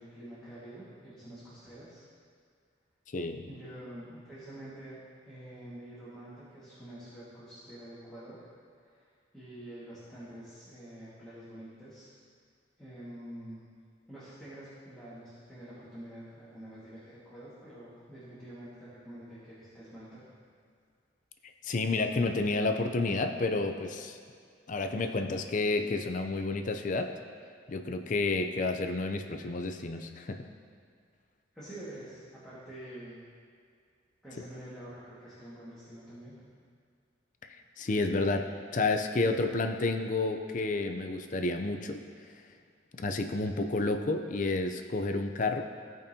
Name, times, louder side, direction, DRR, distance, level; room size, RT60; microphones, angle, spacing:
voice 1, 0.0-2.0 3.5-5.0 5.3-8.5 8.7-9.1 9.3-12.1 12.8-13.7 14.1-20.4 31.5-33.2 34.2-36.5, right 1 dB, 5° left, -12 dB, 1.7 m, -47 dB
voice 2, 3.1-3.5 21.6-24.2 24.7-27.1 27.7-30.5 37.8-38.4 38.7-42.0 42.9-45.6, left 3 dB, 45° left, 6 dB, 0.5 m, -30 dB
15.5 x 5.2 x 2.8 m, 2.2 s
head